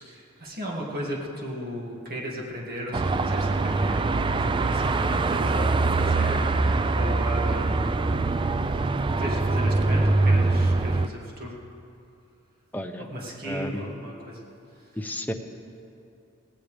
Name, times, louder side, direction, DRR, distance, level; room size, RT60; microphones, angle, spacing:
voice 1, 0.0-8.3 9.2-11.6 13.0-14.4, equal, 45° right, -3 dB, 2.3 m, -35 dB
Car passing by / Traffic noise roadway noise / Engine, 2.9-11.1, right 3 dB, 25° right, 0.3 m, -23 dB
voice 2, 12.7-13.1 13.4-13.9 15.0-15.3, equal, 10° left, 4 dB, 0.7 m, -32 dB
17.5 x 16.5 x 3.4 m, 2.6 s
head